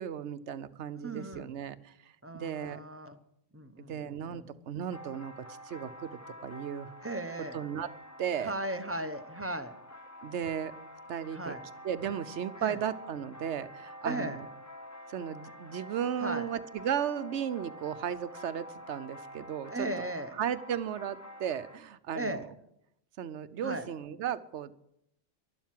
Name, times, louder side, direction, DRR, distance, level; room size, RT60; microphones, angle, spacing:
voice 1, 0.0-1.9 2.3-2.8 3.9-5.3 5.7-6.9 7.5-7.9 8.2-8.5 10.2-10.7 11.1-11.5 11.8-14.4 15.1-19.9 20.4-22.4 23.2-24.7, right 9 dB, 70° right, 14 dB, 1.0 m, -35 dB
voice 2, 1.0-1.5 2.2-3.2 3.5-4.5 7.0-7.6 8.4-9.7 11.3-11.6 12.6-12.8 14.0-14.4 16.2-16.5 19.7-20.3 22.1-22.5 23.6-23.9, right 1 dB, 10° right, 7 dB, 0.9 m, -36 dB
sound 1, 4.9-21.8, equal, 15° left, 0.7 m, -48 dB
12.0 x 12.0 x 7.6 m, 0.78 s
omnidirectional pair, 1.2 m